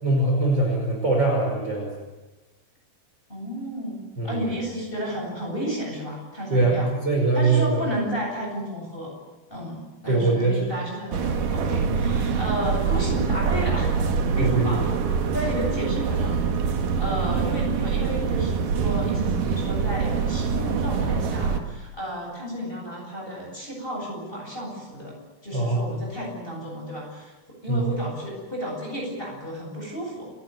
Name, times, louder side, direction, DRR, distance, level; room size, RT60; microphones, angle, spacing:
voice 1, 0.0-1.9 4.2-4.4 6.5-7.8 10.1-10.6 14.4-14.8 25.5-26.0 27.7-27.8, right 2 dB, 25° right, -1 dB, 6.2 m, -22 dB
voice 2, 3.3-6.9 7.3-9.1 9.5-14.0 14.3-14.8 15.3-25.1 25.4-27.3 27.6-30.3, equal, 10° left, -2 dB, 7.9 m, -32 dB
sound 1, 11.1-21.6, right 6 dB, 60° right, 3.0 m, -24 dB
29.5 x 15.0 x 9.6 m, 1.1 s
omnidirectional pair, 4.8 m